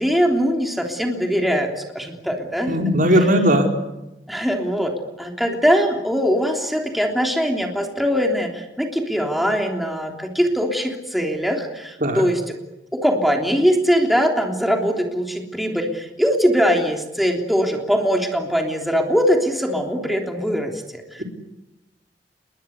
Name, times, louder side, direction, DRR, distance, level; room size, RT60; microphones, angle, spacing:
voice 1, 0.0-2.7 4.3-12.6 12.9-21.2, equal, ahead, 2 dB, 3.4 m, -21 dB
voice 2, 2.7-3.7 12.0-12.2 21.2-21.3, equal, 50° right, 3 dB, 4.9 m, -17 dB
30.0 x 22.5 x 8.4 m, 0.97 s
head